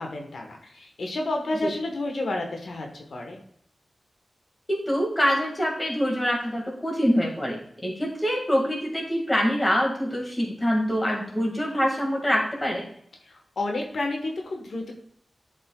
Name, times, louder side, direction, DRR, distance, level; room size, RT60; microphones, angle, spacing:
voice 1, 0.0-3.4 13.2-14.9, left 2 dB, 80° left, 2 dB, 1.2 m, -30 dB
voice 2, 4.7-12.8, equal, 20° left, -1 dB, 1.8 m, -25 dB
11.5 x 5.3 x 2.3 m, 0.67 s
wide cardioid pair, 125°, 0 cm